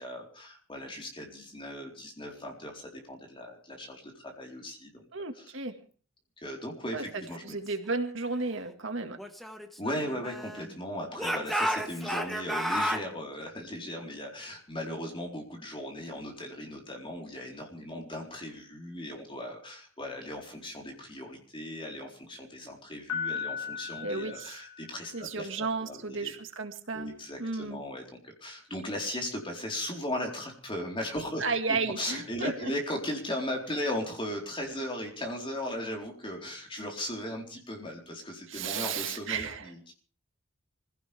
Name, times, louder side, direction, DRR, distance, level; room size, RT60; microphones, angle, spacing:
voice 1, 0.0-5.0 5.3-5.5 6.4-7.6 9.8-26.3 26.9-31.4 32.0-39.9, left 1 dB, 25° left, 1 dB, 4.2 m, -37 dB
voice 2, 5.1-5.8 6.9-9.2 24.0-24.6 25.1-27.1 27.4-27.8 31.4-32.7 38.5-39.7, right 4 dB, 60° right, 6 dB, 2.0 m, -33 dB
Speech / Shout, 9.2-10.7 11.2-13.1, equal, ahead, 1.5 m, -32 dB
Piano, 23.1-25.2, left 6 dB, 75° left, 6.1 m, -37 dB
25.0 x 16.5 x 3.5 m, 0.42 s
head